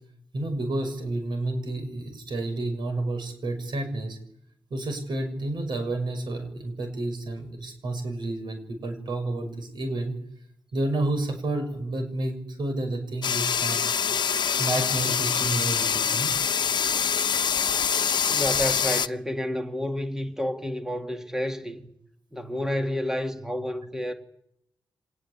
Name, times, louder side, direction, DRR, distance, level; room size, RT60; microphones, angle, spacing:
voice 1, 0.3-4.2 4.7-10.1 10.7-13.8 14.6-16.3, right 2 dB, 70° right, 6.7 m, -30 dB
sound 1, 13.2-19.1, left 7 dB, 65° left, 1.0 m, -25 dB
voice 2, 18.3-21.8 22.3-24.1, left 1 dB, 5° right, 2.1 m, -30 dB
25.5 x 20.0 x 8.6 m
wide cardioid pair, 155°, 8 cm